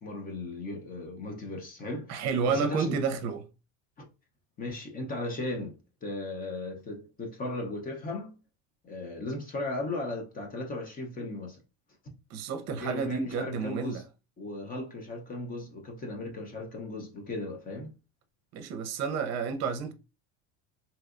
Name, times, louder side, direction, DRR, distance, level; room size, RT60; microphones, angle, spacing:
voice 1, 0.0-2.9 4.0-4.1 4.6-8.3 8.8-11.6 12.7-14.0 14.4-17.9, left 2 dB, 25° left, 0.7 m, -36 dB
voice 2, 2.1-3.4 12.3-14.0 18.5-19.9, right 6 dB, 50° right, 0.6 m, -30 dB
3.1 x 2.8 x 2.4 m
cardioid pair, 140°, 35 cm